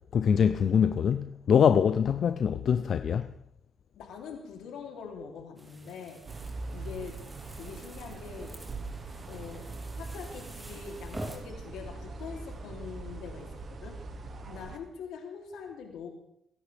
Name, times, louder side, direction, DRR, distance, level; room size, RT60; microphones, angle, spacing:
voice 1, 0.1-3.3, left 7 dB, 60° left, 0.6 m, -24 dB
voice 2, 4.0-6.3 6.7-7.2 7.6-8.6 9.2-14.0 14.5-16.1, left 6 dB, 85° left, 3.2 m, -43 dB
sound 1, 5.6-11.4, right 1 dB, 15° right, 3.2 m, -47 dB
sound 2, 6.3-14.8, right 3 dB, 50° right, 1.4 m, -42 dB
23.5 x 11.0 x 3.5 m
cardioid pair, 90°, 0 cm